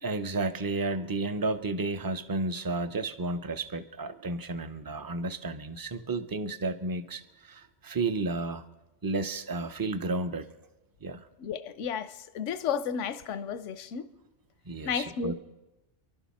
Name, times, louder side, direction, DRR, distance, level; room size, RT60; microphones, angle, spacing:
voice 1, 0.0-8.6 9.0-10.5 11.0-11.2 14.7-15.3, right 3 dB, 25° right, 0.5 m, -32 dB
voice 2, 11.4-14.1 14.8-15.3, left 7 dB, 90° left, 1.0 m, -32 dB
27.5 x 12.0 x 4.2 m
omnidirectional pair, 1.2 m